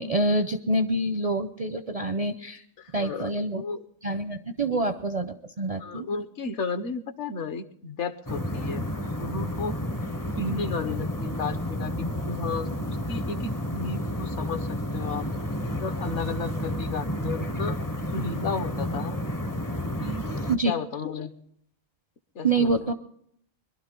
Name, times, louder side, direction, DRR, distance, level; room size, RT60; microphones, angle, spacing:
voice 1, 0.0-2.6 2.9-3.6 4.0-6.1 20.5-20.7 22.4-22.9, right 2 dB, 40° right, 7 dB, 0.5 m, -26 dB
voice 2, 2.8-3.9 4.7-4.9 5.8-9.8 10.4-15.2 15.6-17.8 18.1-19.2 20.0-20.3 20.6-21.3 22.3-22.9, left 4 dB, 60° left, 11 dB, 1.1 m, -33 dB
sound 1, 8.3-20.6, equal, 20° left, 0.6 m, -31 dB
22.0 x 12.0 x 3.8 m, 0.66 s
omnidirectional pair, 1.4 m